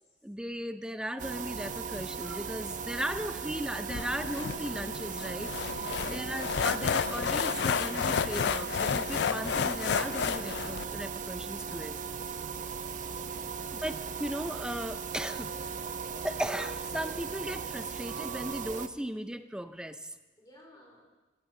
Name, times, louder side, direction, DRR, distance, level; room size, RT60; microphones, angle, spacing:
voice 1, 0.2-12.0 13.8-15.8 16.2-20.1, right 1 dB, 5° right, 10 dB, 0.5 m, -37 dB
sound 1, 1.2-18.9, right 6 dB, 45° right, 0.7 m, -38 dB
sound 2, 3.9-10.8, left 7 dB, 65° left, 0.4 m, -31 dB
voice 2, 12.3-12.7 13.0-13.6 20.4-21.1, equal, 20° left, -2 dB, 4.0 m, -58 dB
18.5 x 15.5 x 3.8 m, 1.1 s
head